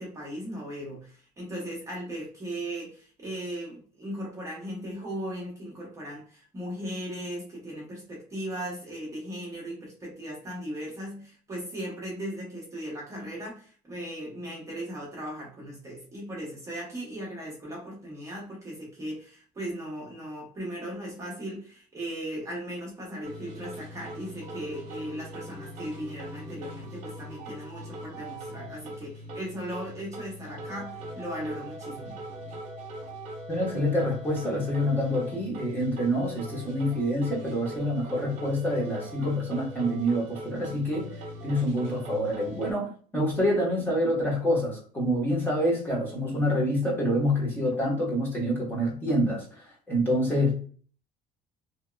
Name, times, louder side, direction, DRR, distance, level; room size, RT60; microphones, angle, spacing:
voice 1, 0.0-32.2, equal, 20° right, -4 dB, 0.9 m, -37 dB
sound 1, 23.2-42.7, right 1 dB, 55° right, 0.8 m, -41 dB
voice 2, 33.5-41.1 41.4-50.5, equal, 15° left, -4 dB, 1.1 m, -27 dB
2.9 x 2.7 x 2.2 m, 0.42 s
cardioid pair, 150°, 15 cm